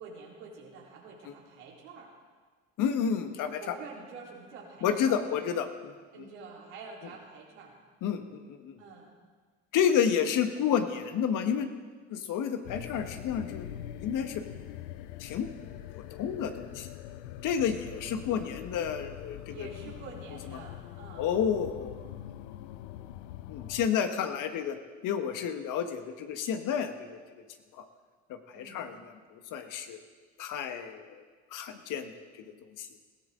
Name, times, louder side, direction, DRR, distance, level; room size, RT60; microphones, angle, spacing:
voice 1, 0.0-2.1 3.6-5.5 6.1-7.7 8.8-9.1 18.2-18.4 19.5-21.3 28.5-28.9, right 4 dB, 80° right, -4 dB, 4.2 m, -47 dB
voice 2, 2.8-3.7 4.8-5.9 8.0-8.8 9.7-11.7 12.1-13.7 14.0-14.4 15.2-15.5 16.2-16.9 17.4-19.7 21.2-21.9 22.3-22.4 23.5-24.8 25.0-27.2 27.7-27.8 28.3-28.9 29.5-30.0 30.4-31.2 31.5-32.2 32.8-32.9, left 8 dB, 65° left, 7 dB, 1.6 m, -30 dB
sound 1, 12.6-23.9, left 12 dB, 80° left, 0.7 m, -43 dB
21.0 x 16.5 x 3.9 m, 1.5 s
hypercardioid pair, 65°, 34 cm